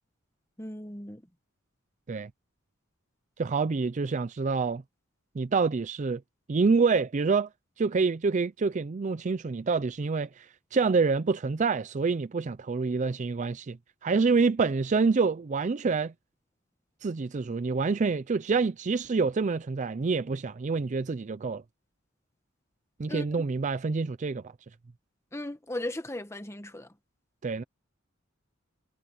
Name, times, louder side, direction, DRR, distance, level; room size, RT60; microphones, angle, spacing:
voice 1, 0.6-1.2 23.1-23.2 25.3-26.9, left 1 dB, 15° left, 1.4 m, -36 dB
voice 2, 3.4-4.8 5.4-6.2 6.5-7.5 7.8-13.8 14.0-16.1 17.0-21.6 23.0-24.4 27.4-27.6, right 4 dB, 35° right, 0.4 m, -27 dB
head